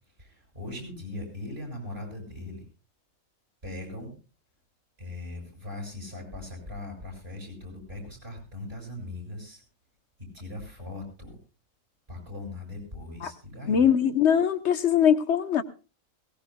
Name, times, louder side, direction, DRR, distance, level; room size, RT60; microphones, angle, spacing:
voice 1, 0.2-2.7 3.6-4.1 5.0-9.6 10.3-11.4 12.1-13.8, left 2 dB, 45° right, 0 dB, 7.5 m, -39 dB
voice 2, 13.7-15.6, left 8 dB, 60° left, 10 dB, 1.3 m, -22 dB
21.5 x 18.5 x 2.2 m, 0.33 s
omnidirectional pair, 1.4 m